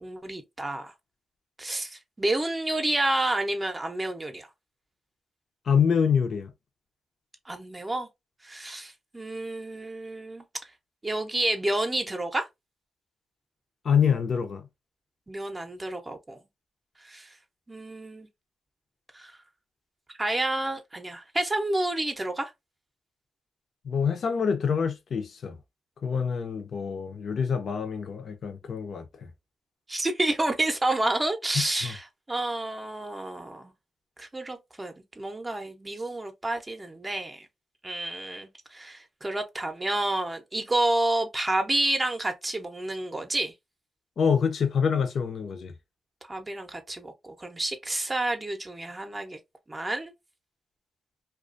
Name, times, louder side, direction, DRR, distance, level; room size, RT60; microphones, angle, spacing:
voice 1, 0.0-0.9 1.6-4.5 7.5-8.1 8.4-10.4 11.0-12.5 15.3-16.4 17.0-17.3 17.7-18.3 19.1-19.3 20.2-22.5 29.9-33.7 34.2-37.5 37.8-43.5 46.3-49.4 49.7-50.1, right 2 dB, 25° right, 0.6 m, -29 dB
voice 2, 5.7-6.5 13.8-14.7 23.8-25.6 26.0-29.3 31.8-32.0 44.2-45.7, left 6 dB, 65° left, 0.6 m, -26 dB
2.4 x 2.2 x 2.5 m
cardioid pair, 70°, 0 cm